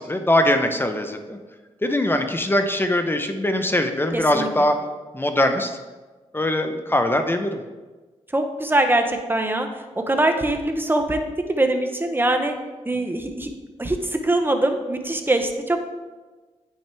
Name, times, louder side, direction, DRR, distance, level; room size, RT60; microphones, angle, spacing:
voice 1, 0.0-1.4 1.8-4.7 5.1-5.8 6.3-7.6, left 1 dB, 20° left, 6 dB, 0.8 m, -22 dB
voice 2, 4.1-4.5 8.3-11.2 11.5-12.5 12.8-13.5 13.8-15.8, right 1 dB, 15° right, 5 dB, 1.0 m, -22 dB
8.6 x 5.8 x 3.5 m, 1.3 s
cardioid pair, 65°, 12 cm